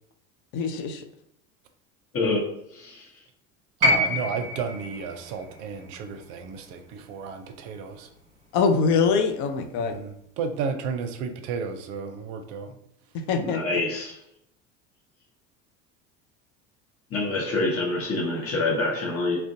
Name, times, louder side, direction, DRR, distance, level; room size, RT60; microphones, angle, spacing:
voice 1, 0.5-1.0 8.5-10.0 13.1-13.8, left 5 dB, 55° left, 6 dB, 0.5 m, -24 dB
voice 2, 2.1-2.4 2.7-3.2 13.4-14.2 17.1-19.4, left 2 dB, 40° left, -2 dB, 1.0 m, -26 dB
sound 1, 3.8-8.0 9.2-9.3, left 1 dB, 20° right, 1.2 m, -28 dB
voice 3, 3.8-8.1 9.8-12.7, right 6 dB, 60° right, 7 dB, 0.5 m, -33 dB
2.4 x 2.1 x 2.6 m, 0.74 s
hypercardioid pair, 80°, 37 cm